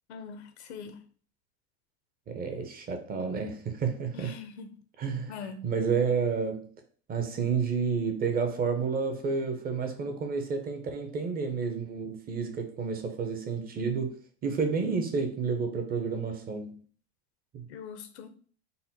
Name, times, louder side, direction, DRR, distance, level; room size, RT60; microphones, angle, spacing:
voice 1, 0.1-1.0 4.1-4.7 5.3-5.6 17.7-18.3, left 5 dB, 90° left, 0.8 m, -42 dB
voice 2, 2.3-4.3 5.0-6.7 7.1-14.2 14.4-16.8 17.5-17.6, right 5 dB, 30° right, 0.8 m, -30 dB
4.1 x 2.1 x 4.1 m
supercardioid pair, 120°, 32 cm